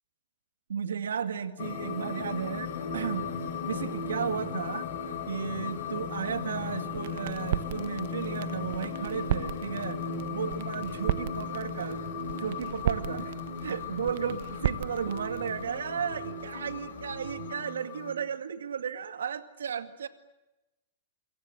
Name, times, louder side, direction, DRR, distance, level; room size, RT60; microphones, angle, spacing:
voice 1, 0.7-4.9 5.3-10.0 10.3-12.0 12.4-13.3 13.6-20.1, right 7 dB, 80° right, 11 dB, 2.1 m, -34 dB
sound 1, 1.6-18.2, left 5 dB, 60° left, 4.0 m, -37 dB
sound 2, 2.3-17.6, left 4 dB, 85° left, 6.4 m, -46 dB
sound 3, 6.9-15.8, right 12 dB, 65° right, 1.5 m, -36 dB
27.5 x 23.5 x 8.0 m, 0.97 s
hypercardioid pair, 110°, 0 cm